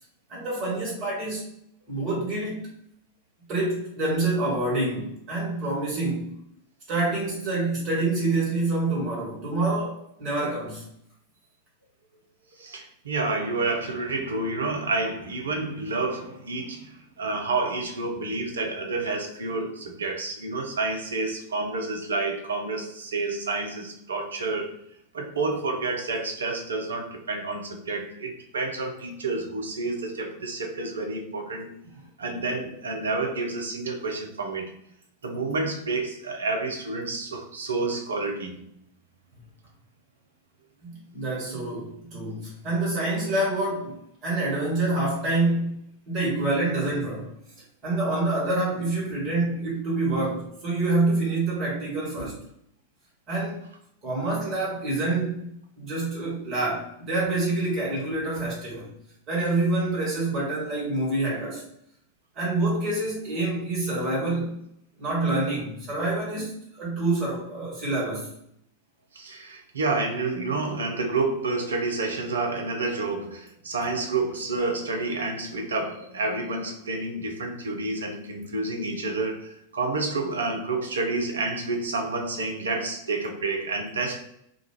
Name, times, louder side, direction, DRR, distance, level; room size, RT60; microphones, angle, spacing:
voice 1, 0.3-1.4 1.9-2.7 3.5-6.3 6.9-10.8 40.8-45.7 46.1-47.3 47.8-52.4 53.3-53.6 54.0-55.4 55.8-58.9 59.3-61.6 62.3-64.5 65.0-68.3, right 2 dB, 35° right, -4 dB, 1.3 m, -27 dB
voice 2, 12.6-24.7 25.1-31.7 32.2-34.7 35.2-38.7 69.1-84.3, right 3 dB, 70° right, 3 dB, 0.5 m, -29 dB
2.4 x 2.2 x 2.9 m, 0.73 s
figure-of-eight pair, 90°, 0 cm